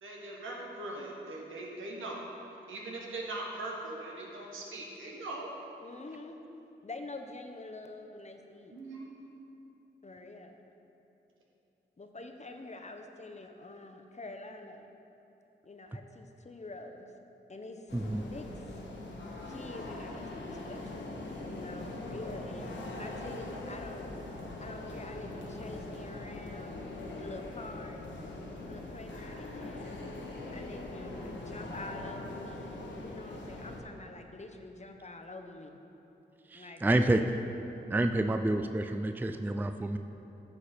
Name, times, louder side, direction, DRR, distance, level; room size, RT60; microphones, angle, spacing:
voice 1, 0.0-2.2 2.7-5.5 8.7-9.1, right 2 dB, 85° right, -2 dB, 1.3 m, -40 dB
voice 2, 5.8-6.4 6.8-8.7 10.0-10.7 12.0-14.9 15.6-17.1 17.5-17.9 18.3-18.5 19.5-21.1 21.5-24.1 24.6-28.0 28.7-30.0 30.5-35.8 36.5-37.3, left 2 dB, 35° left, 5 dB, 0.9 m, -46 dB
sound 1, 17.9-33.8, left 2 dB, 65° left, 1.2 m, -42 dB
voice 3, 36.5-37.2 37.9-40.0, right 1 dB, 10° right, 8 dB, 0.4 m, -28 dB
9.7 x 6.5 x 4.4 m, 2.9 s
supercardioid pair, 40°, 20 cm